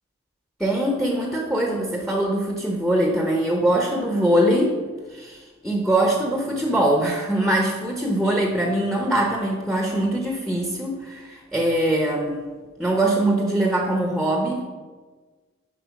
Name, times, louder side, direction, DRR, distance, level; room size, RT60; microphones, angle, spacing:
voice 1, 0.6-4.8 5.1-12.5 12.8-14.6, right 1 dB, ahead, 0 dB, 0.8 m, -22 dB
10.5 x 4.4 x 5.1 m, 1.4 s
head